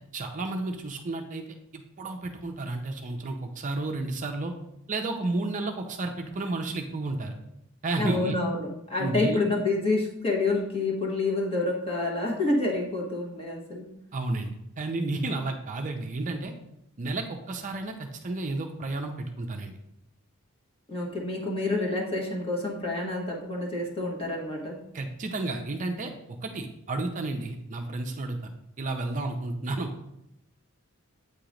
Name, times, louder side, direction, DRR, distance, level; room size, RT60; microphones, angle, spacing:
voice 1, 0.0-1.4 1.7-4.5 4.9-7.3 7.8-8.4 9.0-9.4 14.1-16.5 17.0-19.8 24.9-26.1 26.4-28.4 28.8-29.9, right 2 dB, 35° right, 3 dB, 0.5 m, -32 dB
voice 2, 8.0-13.9 20.9-24.8, left 2 dB, 25° left, -2 dB, 1.4 m, -28 dB
8.1 x 3.0 x 5.0 m, 0.82 s
head